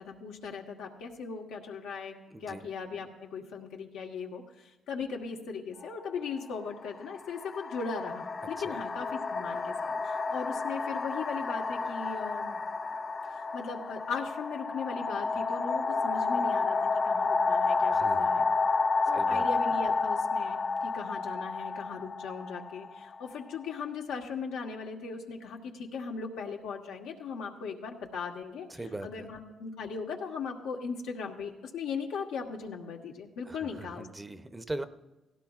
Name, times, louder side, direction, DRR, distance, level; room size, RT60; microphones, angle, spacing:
voice 1, 0.0-2.1 2.4-12.6 13.3-16.8 17.0-18.5 19.1-28.7 29.0-34.1, left 5 dB, 90° left, 1 dB, 1.3 m, -38 dB
voice 2, 2.3-2.6 8.6-8.8 17.9-18.3 19.1-19.5 28.7-29.3 33.5-34.9, right 2 dB, 15° right, 10 dB, 0.7 m, -40 dB
sound 1, 5.8-6.0 6.9-23.6, left 4 dB, 40° left, 0.5 m, -30 dB
17.0 x 16.0 x 2.4 m, 1.1 s
cardioid pair, 90°, 0 cm